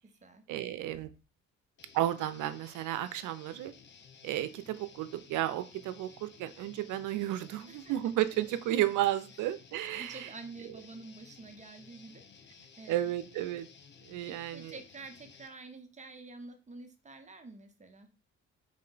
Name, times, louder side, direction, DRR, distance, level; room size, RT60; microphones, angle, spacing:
voice 1, 0.5-1.1 1.9-3.7 4.2-10.3 10.6-10.7 12.9-13.7 14.0-14.7, right 13 dB, 80° right, 12 dB, 0.5 m, -33 dB
Guitar, 1.8-15.5, left 6 dB, 40° left, 0.6 m, -56 dB
voice 2, 9.9-13.1 14.2-18.1, right 3 dB, 25° right, 6 dB, 0.6 m, -49 dB
3.6 x 2.1 x 3.8 m, 0.32 s
cardioid pair, 90°, 30 cm